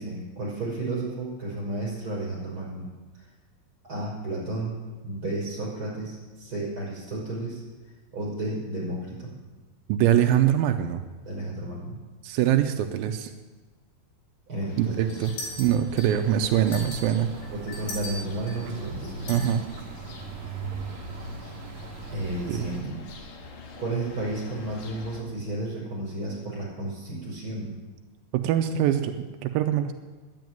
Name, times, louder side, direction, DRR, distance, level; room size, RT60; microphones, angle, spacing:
voice 1, 0.0-2.9 3.8-4.8 5.0-7.6 8.1-9.3 11.2-12.0 14.5-15.2 15.5-15.6 17.5-19.4 22.1-23.0 23.8-27.7, right 2 dB, 20° right, -5 dB, 5.7 m, -32 dB
voice 2, 9.9-11.0 12.2-13.3 14.8-15.3 15.6-17.3 19.3-19.6 22.5-22.6 28.3-29.9, right 10 dB, 85° right, 6 dB, 2.1 m, -23 dB
sound 1, 14.7-25.2, left 3 dB, 60° left, 2.2 m, -45 dB
sound 2, 15.1-16.3 16.7-18.6 19.3-19.5, left 2 dB, 85° left, 5.9 m, -38 dB
sound 3, 16.1-22.8, right 5 dB, 65° right, 1.8 m, -40 dB
10.5 x 9.5 x 9.3 m, 1.3 s
omnidirectional pair, 4.8 m